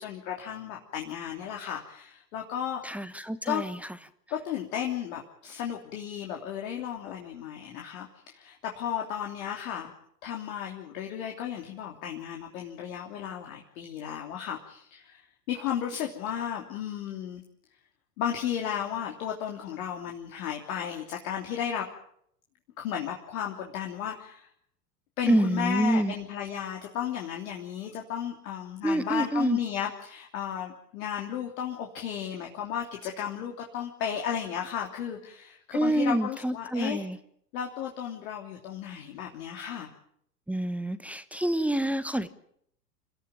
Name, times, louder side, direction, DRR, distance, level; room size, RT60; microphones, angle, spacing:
voice 1, 0.0-2.9 3.5-3.6 4.3-9.9 10.2-17.4 18.2-21.8 22.8-24.5 25.2-37.1 37.5-39.9, left 9 dB, 60° left, 1 dB, 3.2 m, -34 dB
voice 2, 2.8-3.8 25.3-26.1 28.8-29.6 35.7-37.2 40.5-42.3, right 1 dB, 5° right, 12 dB, 1.1 m, -27 dB
28.0 x 14.0 x 9.0 m, 0.71 s
hypercardioid pair, 95°, 48 cm